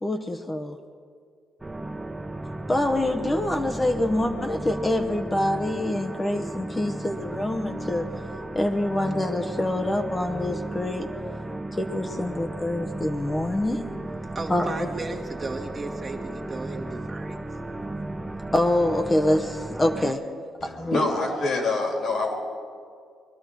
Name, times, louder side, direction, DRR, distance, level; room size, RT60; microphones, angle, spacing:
voice 1, 0.0-0.8 2.7-8.1 8.5-11.1 11.8-13.8 14.5-14.7 18.5-20.2 20.8-21.0, left 1 dB, 20° left, 6 dB, 0.9 m, -25 dB
sound 1, 1.6-20.1, right 2 dB, 15° right, 0.6 m, -35 dB
voice 2, 14.3-17.4 19.8-20.1, right 3 dB, 35° right, 0 dB, 1.5 m, -35 dB
voice 3, 20.6-22.3, left 3 dB, 70° left, 1 dB, 3.2 m, -26 dB
21.5 x 12.0 x 4.6 m, 2.2 s
cardioid pair, 90°, 0 cm